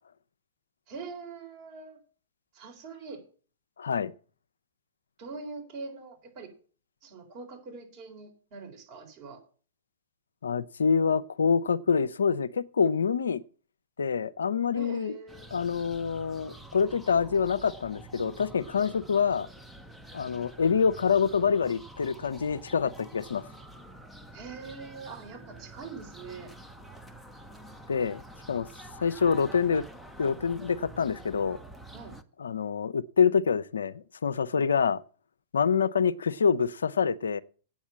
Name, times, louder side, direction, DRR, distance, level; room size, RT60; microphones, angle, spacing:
voice 1, 0.9-2.0 2.5-3.2 5.2-6.5 7.0-9.4 14.7-15.5 24.3-26.5 31.9-32.2, right 4 dB, 45° right, 4.0 m, -43 dB
voice 2, 3.8-4.1 10.4-13.4 14.0-15.1 15.5-19.5 20.1-23.4 27.9-28.2 28.5-28.7 29.0-29.8 30.2-31.6 32.4-35.0 35.5-37.4, left 6 dB, 80° left, 0.5 m, -26 dB
sound 1, 15.3-32.2, right 1 dB, ahead, 0.9 m, -47 dB
8.8 x 7.2 x 7.3 m
hypercardioid pair, 110°, 0 cm